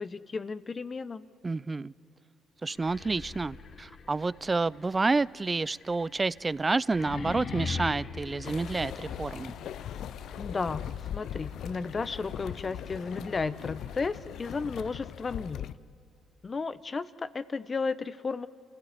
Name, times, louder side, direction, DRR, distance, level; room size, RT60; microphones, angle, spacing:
voice 1, 0.0-1.3 10.4-15.7 16.4-18.5, left 4 dB, 40° left, 0.9 m, -34 dB
voice 2, 1.4-1.9 2.6-9.5, right 3 dB, 30° right, 0.5 m, -29 dB
sound 1, 2.7-9.6, left 5 dB, 55° left, 1.4 m, -40 dB
sound 2, 8.4-15.7, left 10 dB, 70° left, 0.5 m, -40 dB
sound 3, 8.9-14.6, equal, 75° right, 3.1 m, -54 dB
29.0 x 16.0 x 9.6 m
supercardioid pair, 55°, 0 cm